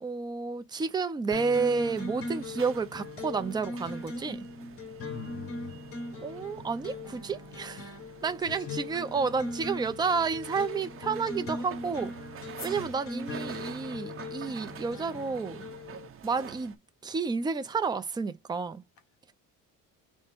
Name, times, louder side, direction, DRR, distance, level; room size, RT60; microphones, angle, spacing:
voice 1, 0.0-4.4 6.2-8.0 8.2-12.1 12.6-15.6 16.2-16.7 17.0-18.8, right 4 dB, 15° right, 0.5 m, -31 dB
sound 1, 1.3-16.1, left 2 dB, 40° left, 1.8 m, -40 dB
sound 2, 1.8-16.8, right 8 dB, 40° right, 0.8 m, -48 dB
voice 2, 5.1-5.9 8.4-8.8 12.8-13.0, left 8 dB, 60° left, 1.4 m, -43 dB
sound 3, 12.5-16.7, left 5 dB, 25° left, 2.1 m, -54 dB
4.8 x 2.2 x 4.4 m
cardioid pair, 130°, 33 cm